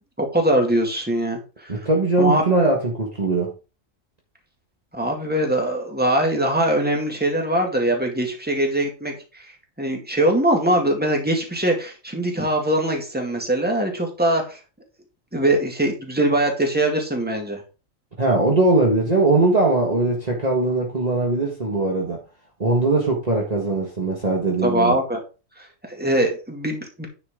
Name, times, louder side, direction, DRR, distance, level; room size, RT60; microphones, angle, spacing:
voice 1, 0.2-1.8 2.2-2.4 4.9-9.5 9.8-14.6 15.3-17.6 24.6-25.2 25.6-27.1, right 1 dB, 5° right, 2.1 m, -22 dB
voice 2, 1.7-3.5 18.2-22.2 22.6-25.0, right 2 dB, 30° right, 1.7 m, -20 dB
9.9 x 6.3 x 3.7 m
omnidirectional pair, 1.4 m